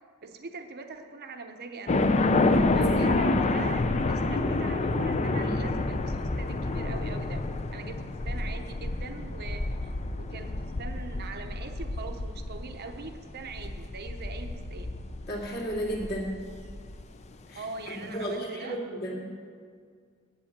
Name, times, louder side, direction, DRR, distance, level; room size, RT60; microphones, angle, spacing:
voice 1, 0.2-2.0 2.7-7.4 7.7-14.9 16.5-16.6 17.5-18.8, right 4 dB, 45° right, 5 dB, 0.7 m, -42 dB
sound 1, 1.9-17.0, left 2 dB, 30° left, 0.5 m, -28 dB
voice 2, 15.3-16.4 17.5-19.2, equal, 50° left, -3 dB, 2.5 m, -33 dB
8.1 x 8.0 x 8.6 m, 2.1 s
head